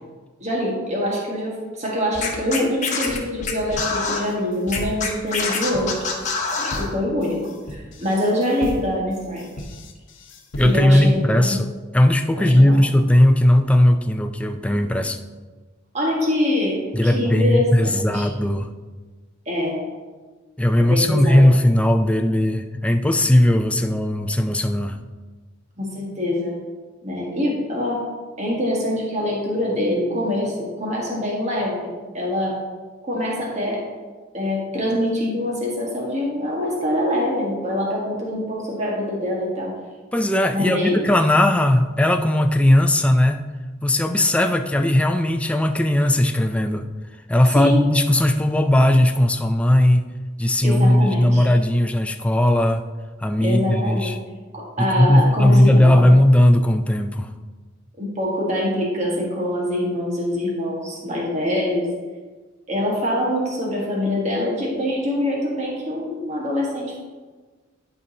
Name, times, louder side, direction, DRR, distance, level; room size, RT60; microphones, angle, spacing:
voice 1, 0.4-6.1 6.6-7.4 7.7-9.5 10.6-11.6 12.3-12.8 15.9-18.3 19.4-19.8 20.9-21.4 25.8-26.6 27.0-28.0 28.4-32.6 33.0-33.8 34.3-39.7 40.5-41.0 47.5-47.9 50.6-51.5 53.4-54.1 54.5-56.0 58.0-61.9 62.7-67.0, left 1 dB, 35° right, -3 dB, 1.5 m, -24 dB
Scratching (performance technique), 2.1-4.2 4.7-6.9, left 4 dB, 40° left, 1.1 m, -25 dB
sound 1, 3.8-11.1, equal, 75° left, 0.9 m, -36 dB
voice 2, 10.6-15.2 16.9-18.7 20.6-25.0 40.1-43.4 43.8-46.9 47.3-50.1 50.4-52.8 53.2-54.2 54.8-57.3, left 1 dB, 5° left, 6 dB, 0.3 m, -17 dB
11.5 x 5.1 x 2.8 m, 1.4 s
head